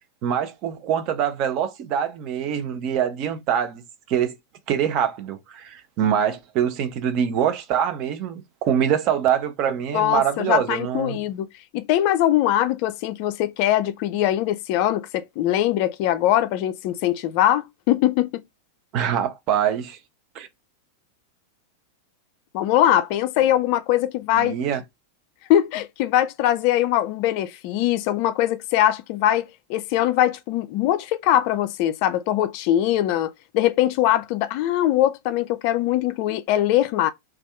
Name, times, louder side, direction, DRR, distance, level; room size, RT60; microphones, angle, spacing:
voice 1, 0.2-3.8 4.1-4.3 4.7-11.2 18.9-20.0 20.3-20.5 24.3-24.8, right 9 dB, 40° right, 0.6 m, -24 dB
voice 2, 9.9-11.5 11.7-18.4 22.5-24.6 25.5-37.1, left 12 dB, 45° left, 0.3 m, -22 dB
2.5 x 2.3 x 3.3 m
figure-of-eight pair, 90°, 0 cm